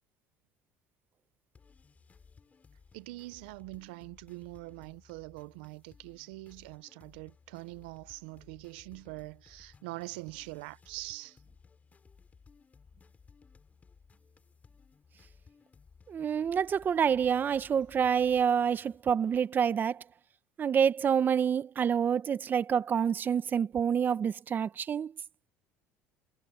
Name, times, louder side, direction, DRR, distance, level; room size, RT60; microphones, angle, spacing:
sound 1, 1.6-19.0, left 5 dB, 30° left, 4.6 m, -60 dB
voice 1, 2.9-11.4, right 23 dB, 85° right, 0.8 m, -44 dB
voice 2, 16.1-20.0 20.6-25.1, right 7 dB, 35° right, 0.9 m, -27 dB
supercardioid pair, 95°, 5 cm